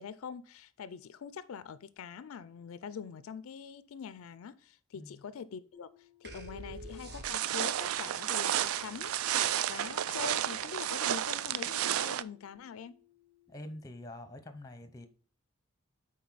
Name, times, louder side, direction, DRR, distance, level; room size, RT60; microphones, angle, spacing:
voice 1, 0.0-9.1 9.7-13.0, left 7 dB, 70° left, 0.4 m, -44 dB
sound 1, 5.7-14.0, left 16 dB, 5° right, 1.3 m, -65 dB
sound 2, 6.2-7.8, equal, 45° right, 0.8 m, -45 dB
sound 3, 7.2-12.2, right 11 dB, 75° right, 0.3 m, -32 dB
voice 2, 13.5-15.1, left 1 dB, 15° left, 0.7 m, -46 dB
9.4 x 3.8 x 4.0 m
head